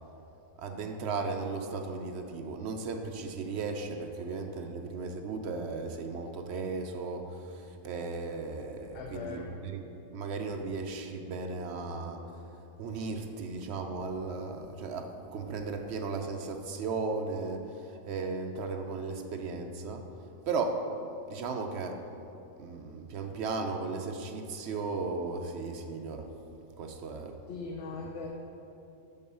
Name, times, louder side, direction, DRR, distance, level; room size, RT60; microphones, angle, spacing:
voice 1, 0.6-9.8 10.1-12.2 12.8-20.0 20.5-20.8 21.3-22.0 22.6-26.3 26.8-27.4, right 4 dB, 65° right, 5 dB, 0.8 m, -36 dB
voice 2, 8.9-9.5 27.5-28.3, left 4 dB, 65° left, 0 dB, 0.9 m, -39 dB
7.0 x 5.4 x 5.3 m, 2.9 s
omnidirectional pair, 1.4 m